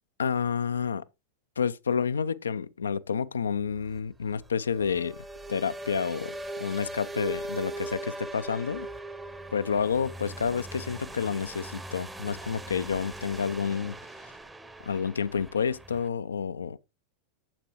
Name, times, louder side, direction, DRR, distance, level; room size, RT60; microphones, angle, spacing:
voice 1, 0.2-1.0 1.6-5.2 5.5-6.3 6.6-8.9 9.5-14.0 14.8-16.8, left 6 dB, 70° left, 0.3 m, -29 dB
sound 1, 3.7-16.1, right 1 dB, 10° right, 0.7 m, -40 dB
8.8 x 7.4 x 2.9 m
figure-of-eight pair, 90°, 0 cm